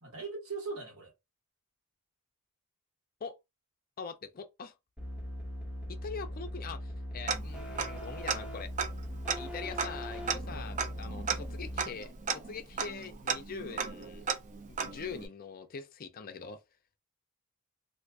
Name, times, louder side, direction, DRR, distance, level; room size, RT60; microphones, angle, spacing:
voice 1, 0.0-1.1 10.5-10.7, right 4 dB, 70° right, 1.4 m, -40 dB
voice 2, 4.0-4.7 5.9-8.7 9.4-14.2 14.7-16.6, left 5 dB, 40° left, 0.5 m, -43 dB
sound 1, 5.0-11.8, equal, 5° right, 1.2 m, -40 dB
Tick-tock, 7.3-8.0 8.3-8.4 8.7-15.3, right 6 dB, 35° right, 0.5 m, -35 dB
2.6 x 2.4 x 3.4 m
head